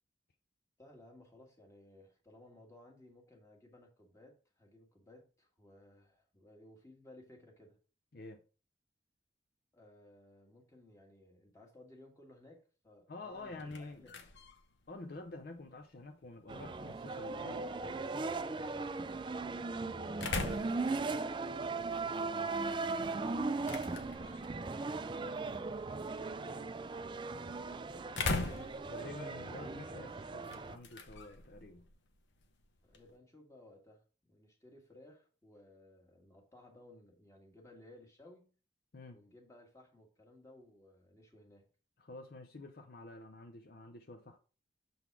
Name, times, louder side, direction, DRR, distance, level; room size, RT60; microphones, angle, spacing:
voice 1, 0.8-7.8 9.7-14.1 18.7-23.3 23.8-28.6 29.2-30.2 32.8-38.5 39.1-41.7, left 1 dB, 15° left, 1.6 m, -59 dB
voice 2, 13.1-14.1 14.9-18.3 28.9-31.9 38.9-39.2 42.0-44.4, left 2 dB, 55° left, 0.6 m, -49 dB
sound 1, 13.3-33.2, left 3 dB, 80° left, 1.0 m, -45 dB
sound 2, 16.5-30.8, right 3 dB, 25° right, 0.3 m, -38 dB
6.9 x 4.0 x 4.6 m
head